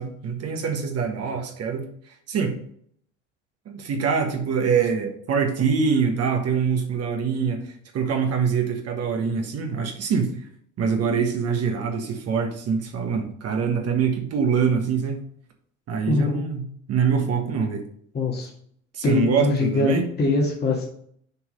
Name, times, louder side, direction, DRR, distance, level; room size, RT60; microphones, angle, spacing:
voice 1, 0.0-2.5 3.6-10.4 10.8-15.2 15.9-17.8 18.9-20.0, right 6 dB, 40° right, 4 dB, 1.4 m, -24 dB
voice 2, 16.1-16.4 18.1-18.5 19.0-20.8, left 2 dB, 25° left, -2 dB, 1.9 m, -22 dB
6.9 x 4.6 x 5.4 m, 0.65 s
hypercardioid pair, 75°, 36 cm